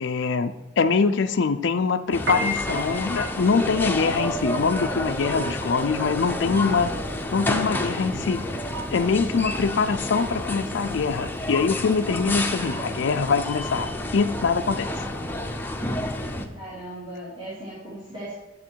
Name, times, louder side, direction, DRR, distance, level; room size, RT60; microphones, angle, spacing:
voice 1, 0.0-6.9 7.3-8.4 8.9-14.9, left 5 dB, 65° left, 6 dB, 0.5 m, -24 dB
sound 1, 2.1-16.5, left 1 dB, 10° left, 0.9 m, -30 dB
Piano, 2.1-12.5, left 1 dB, 65° right, 1.3 m, -36 dB
voice 2, 15.0-15.3 16.5-18.3, right 1 dB, 25° right, -9 dB, 3.0 m, -38 dB
11.0 x 7.6 x 4.6 m, 1.1 s
head